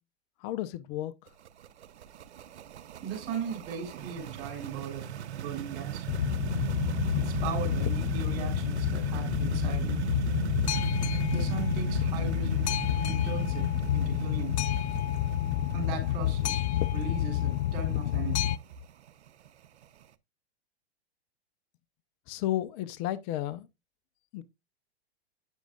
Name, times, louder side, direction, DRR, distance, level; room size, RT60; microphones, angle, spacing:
voice 1, 0.4-1.1 22.3-23.7 24.3-24.4, left 14 dB, 40° left, 0.7 m, -32 dB
sound 1, 1.3-20.0, right 10 dB, 85° right, 0.7 m, -37 dB
voice 2, 3.0-6.1 7.2-10.0 11.3-12.7 13.0-13.7 13.9-14.6 15.7-16.6 16.9-18.5, right 7 dB, 50° right, 3.6 m, -38 dB
Boat Water vehicle, 6.1-18.6, left 12 dB, 80° left, 0.5 m, -29 dB
8.9 x 6.3 x 2.3 m
hypercardioid pair, 115°, 33 cm